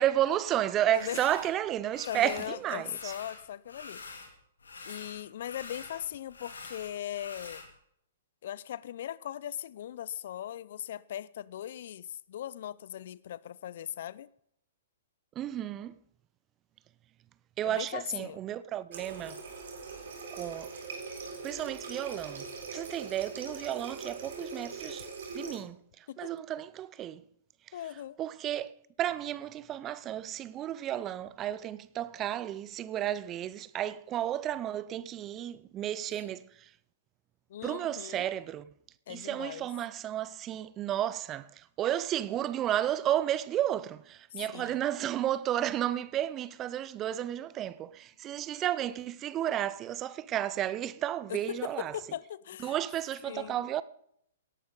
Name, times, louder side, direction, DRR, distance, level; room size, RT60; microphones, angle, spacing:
voice 1, 0.0-3.1 15.4-16.0 17.6-19.4 20.3-20.7 21.4-22.4 22.7-25.1 25.3-27.2 28.2-28.7 29.0-36.7 37.6-38.7 39.1-52.0 52.6-53.8, right 12 dB, 25° right, 0.6 m, -32 dB
sound 1, 1.0-1.5 1.9-2.5 2.8-4.3 4.6-7.7, left 4 dB, 80° left, 2.6 m, -46 dB
voice 2, 2.1-4.0 4.8-7.6 8.4-14.3 17.6-18.4 26.1-26.3 27.7-28.2 37.5-38.2 39.1-39.7 44.3-44.8 51.3-52.8 53.3-53.6, left 11 dB, 60° left, 0.5 m, -39 dB
Water tap faucet, 18.9-25.6, right 4 dB, 65° right, 3.9 m, -42 dB
17.5 x 11.5 x 4.0 m
figure-of-eight pair, 115°, 0 cm